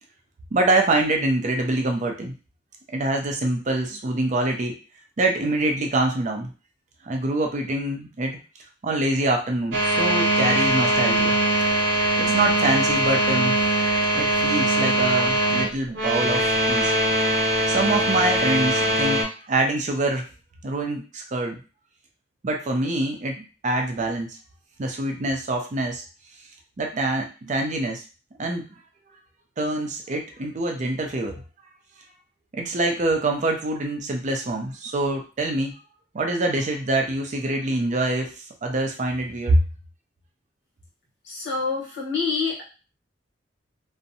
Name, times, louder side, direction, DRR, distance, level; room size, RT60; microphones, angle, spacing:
voice 1, 0.5-2.3 2.9-4.8 5.2-6.5 7.1-8.4 8.8-11.3 12.2-13.6 14.1-16.9 17.7-20.3 20.6-21.6 22.4-24.4 24.8-26.0 26.8-28.0 28.4-28.7 29.6-31.4 32.5-35.7 36.1-38.3 38.6-39.6, right 2 dB, 40° right, 2 dB, 0.4 m, -25 dB
sound 1, 9.7-19.2, right 1 dB, 70° right, 1.0 m, -21 dB
voice 2, 41.2-42.6, left 4 dB, 65° left, -4 dB, 1.3 m, -26 dB
2.6 x 2.1 x 2.6 m, 0.33 s
head